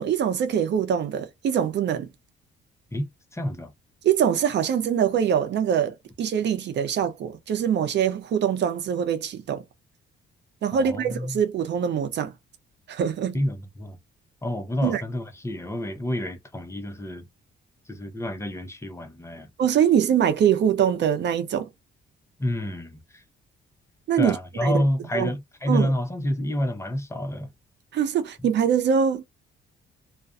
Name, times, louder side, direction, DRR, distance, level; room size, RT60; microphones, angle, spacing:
voice 1, 0.0-2.1 4.0-9.6 10.6-12.3 12.9-13.4 14.8-15.0 19.6-21.7 24.1-24.4 24.6-24.8 25.1-25.3 25.7-25.9 27.9-29.2, right 8 dB, 60° right, 0.6 m, -23 dB
voice 2, 2.9-3.7 10.7-11.4 13.3-14.0 14.4-17.3 17.9-19.5 22.4-23.2 24.2-27.5, left 1 dB, 15° left, 0.7 m, -28 dB
2.4 x 2.2 x 2.4 m
cardioid pair, 90°, 20 cm